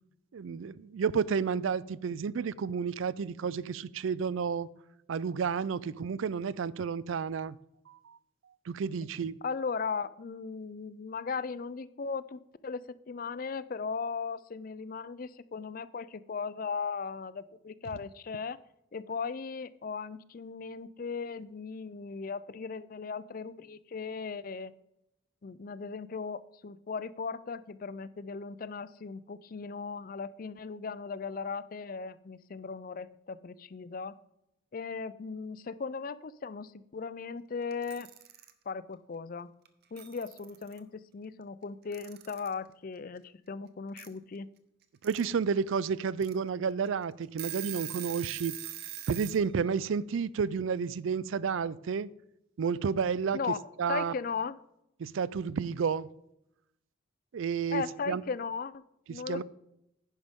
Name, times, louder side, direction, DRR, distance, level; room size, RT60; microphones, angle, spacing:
voice 1, 0.3-4.7 5.1-7.6 7.9-8.2 8.7-9.4 45.0-48.6 49.1-52.1 52.6-53.4 53.8-54.1 55.0-56.1 57.3-58.2 59.1-59.4, right 6 dB, 80° right, 0.4 m, -31 dB
voice 2, 9.4-18.6 18.9-24.7 25.4-34.1 34.7-38.1 38.7-39.5 39.9-44.5 53.3-54.5 57.7-58.7 59.1-59.4, left 5 dB, 45° left, 0.4 m, -37 dB
Alarm / Clock, 37.7-38.5 39.6-39.7 40.0-40.8 41.9-42.5 44.0-44.1 44.8-45.2 45.7-45.8 46.2-46.3 46.9-47.0 47.2-49.4, right 12 dB, 50° right, 0.9 m, -42 dB
10.5 x 10.0 x 3.6 m
head